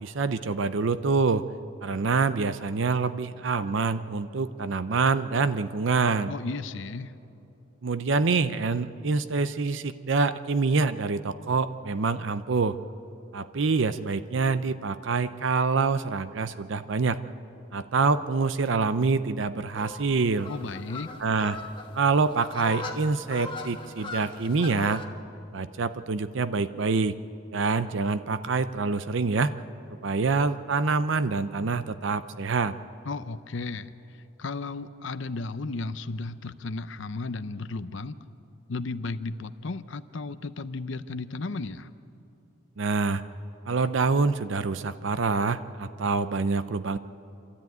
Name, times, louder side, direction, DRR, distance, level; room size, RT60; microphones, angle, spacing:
voice 1, 0.0-1.5 1.8-6.3 7.8-12.8 13.3-17.2 17.7-20.5 21.2-21.6 22.0-25.0 25.5-27.2 27.5-29.5 30.0-32.7 42.8-43.2 43.7-47.0, right 4 dB, 65° right, 12 dB, 0.6 m, -26 dB
voice 2, 6.3-7.1 20.5-21.1 33.0-38.2 38.7-41.9, left 3 dB, 65° left, 12 dB, 0.6 m, -34 dB
sound 1, 19.7-25.1, left 3 dB, 25° left, 1.3 m, -40 dB
27.5 x 13.0 x 9.2 m, 2.8 s
head